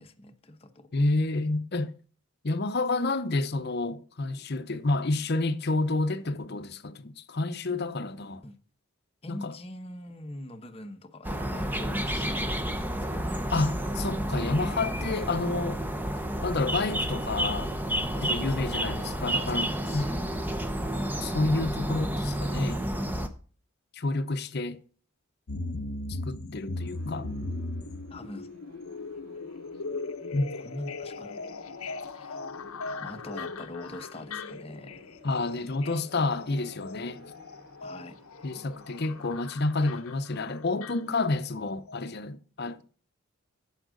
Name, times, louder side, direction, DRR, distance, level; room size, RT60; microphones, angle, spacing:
voice 1, 0.0-0.9 8.4-8.6 9.2-13.5 18.1-18.7 19.3-20.2 28.1-28.5 30.6-31.4 32.1-32.4 33.0-35.1 37.8-38.2, left 1 dB, 25° left, 0.9 m, -43 dB
voice 2, 0.9-1.9 2.4-8.4 9.3-9.5 13.5-15.8 16.4-17.7 18.2-20.1 21.2-22.8 23.9-24.8 26.1-27.3 30.3-30.4 35.2-37.3 38.4-42.9, left 2 dB, 50° left, 0.8 m, -29 dB
sound 1, 11.2-23.3, equal, 10° right, 0.8 m, -30 dB
sound 2, 25.5-41.6 41.9-42.0, left 3 dB, 80° left, 0.9 m, -39 dB
sound 3, 26.8-39.3, left 2 dB, 80° right, 5.8 m, -52 dB
11.0 x 7.4 x 3.9 m
head